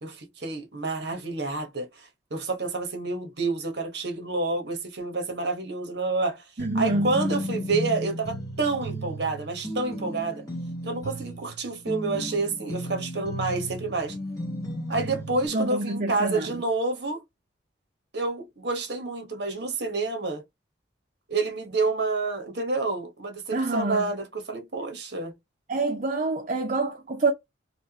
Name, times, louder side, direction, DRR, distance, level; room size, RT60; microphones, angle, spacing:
voice 1, 0.0-6.5 6.7-10.4 10.8-14.2 14.9-17.2 18.1-20.4 21.3-25.3, right 3 dB, 60° right, 1.1 m, -29 dB
sound 1, 6.6-15.5, equal, 20° left, 1.4 m, -34 dB
voice 2, 6.6-7.1 15.5-16.5 23.5-24.1 25.7-27.3, right 2 dB, 40° right, 0.6 m, -26 dB
3.4 x 2.9 x 2.8 m
head